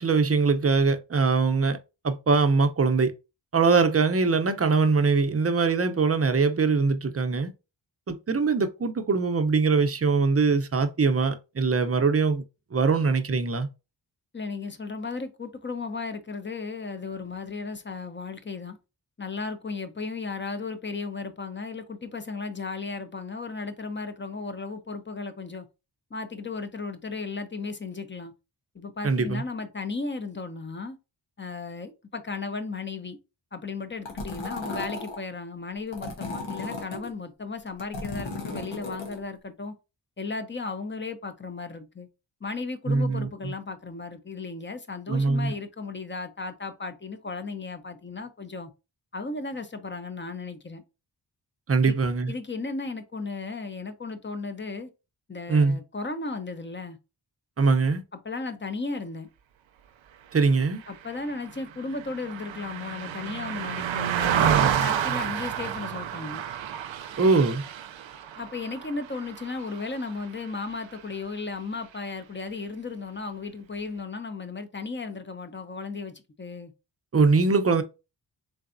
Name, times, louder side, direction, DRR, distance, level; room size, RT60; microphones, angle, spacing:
voice 1, 0.0-1.8 2.0-3.1 3.5-7.5 8.1-12.4 12.7-13.7 29.0-29.4 42.9-43.5 45.1-45.5 51.7-52.3 55.5-55.8 57.6-58.0 60.3-60.8 67.2-67.6 77.1-77.8, right 4 dB, 30° right, 0.7 m, -22 dB
voice 2, 14.3-18.8 19.2-25.7 26.1-28.3 28.7-31.0 31.4-33.2 33.5-39.7 40.2-42.1 42.4-48.7 49.1-50.8 51.8-52.0 52.3-54.9 55.3-57.0 58.1-59.3 60.9-66.4 68.4-76.7, left 4 dB, 25° left, 0.7 m, -35 dB
sound 1, 34.1-35.2 35.9-37.1 37.7-39.2, left 2 dB, 90° left, 1.3 m, -35 dB
Car passing by, 60.8-70.4 70.8-71.0, right 9 dB, 80° right, 0.5 m, -29 dB
3.9 x 3.3 x 2.6 m
cardioid pair, 45°, 45 cm